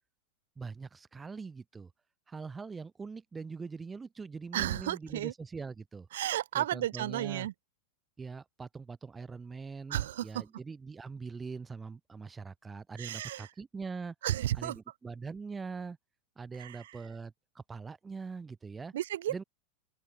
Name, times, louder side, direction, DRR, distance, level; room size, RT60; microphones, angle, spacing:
voice 1, 0.6-1.9 2.3-6.1 6.5-7.5 8.2-14.1 14.6-16.0 16.4-18.9 19.3-19.4, right 4 dB, 15° right, 0.9 m, -42 dB
voice 2, 4.5-5.3 6.1-7.5 9.9-10.4 13.0-13.5 14.2-14.8 16.6-17.0 18.9-19.4, right 13 dB, 60° right, 0.6 m, -33 dB
open air
figure-of-eight pair, 90°, 0 cm